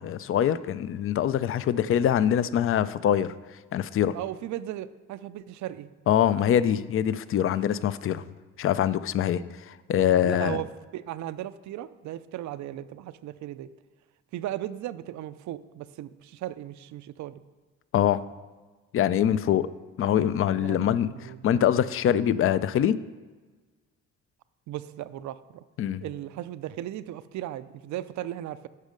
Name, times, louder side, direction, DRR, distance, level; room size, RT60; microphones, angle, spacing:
voice 1, 0.0-3.3 3.7-4.1 6.1-8.3 8.6-10.6 17.9-18.2 18.9-19.7 20.0-23.0 25.8-26.0, left 10 dB, 45° left, 16 dB, 0.4 m, -24 dB
voice 2, 4.1-5.9 10.2-10.7 10.9-13.7 14.3-17.4 20.6-21.5 24.7-25.6 26.0-28.7, right 13 dB, 70° right, 14 dB, 0.5 m, -36 dB
8.2 x 5.5 x 5.1 m, 1.3 s
cardioid pair, 90°, 30 cm